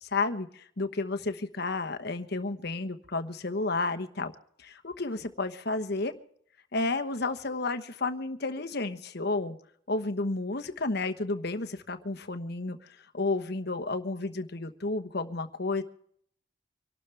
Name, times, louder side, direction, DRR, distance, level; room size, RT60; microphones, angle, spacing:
voice 1, 0.0-4.3 4.6-6.2 6.7-9.6 9.9-12.8 13.1-15.8, left 3 dB, 50° left, 8 dB, 1.1 m, -31 dB
25.5 x 12.5 x 3.4 m, 0.65 s
head